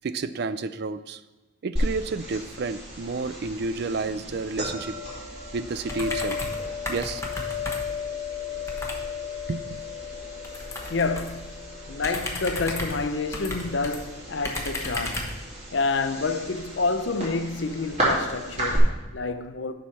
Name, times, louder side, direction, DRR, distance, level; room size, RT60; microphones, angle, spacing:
voice 1, 0.0-1.2 1.6-5.0 5.5-6.4 6.9-7.5 9.5-9.8, right 3 dB, 60° right, 0.4 m, -30 dB
sound 1, 1.8-18.8, left 1 dB, 35° right, 3.2 m, -34 dB
sound 2, 5.9-6.6 6.9-8.0 8.7-9.0 10.4-11.4 12.0-14.0 14.4-15.4, left 1 dB, 15° left, 1.1 m, -33 dB
voice 2, 10.9-11.6 11.9-15.3 15.7-19.7, left 3 dB, 70° left, 0.7 m, -28 dB
7.2 x 6.3 x 5.8 m
head